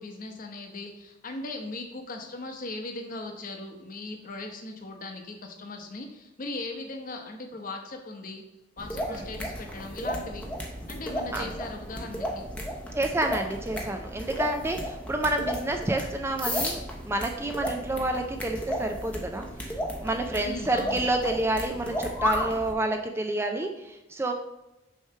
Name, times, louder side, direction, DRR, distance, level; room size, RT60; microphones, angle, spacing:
voice 1, 0.0-8.4 8.8-10.5 10.9-12.5 20.4-21.0, left 2 dB, 45° left, 4 dB, 0.9 m, -38 dB
sound 1, 8.8-22.7, equal, 5° left, 0.8 m, -34 dB
voice 2, 12.9-19.4 20.0-24.3, right 2 dB, 15° right, 4 dB, 0.4 m, -29 dB
6.5 x 3.2 x 5.5 m, 0.98 s
head